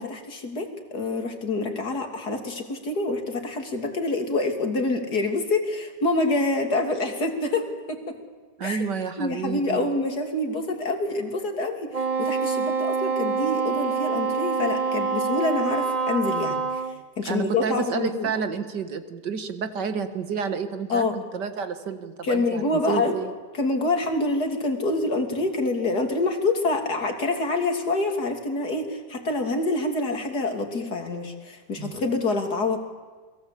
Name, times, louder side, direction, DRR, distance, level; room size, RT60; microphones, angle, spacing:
voice 1, 0.0-8.2 8.6-8.8 9.2-16.8 17.2-18.3 20.9-21.2 22.2-23.2 23.5-32.8, left 2 dB, 65° left, 5 dB, 3.4 m, -26 dB
voice 2, 8.6-9.9 17.3-23.3 31.8-31.9, right 6 dB, 80° right, 9 dB, 2.3 m, -30 dB
Wind instrument woodwind instrument, 11.9-17.0, right 5 dB, 35° right, 0.6 m, -26 dB
28.5 x 22.0 x 8.5 m, 1.4 s
omnidirectional pair, 1.8 m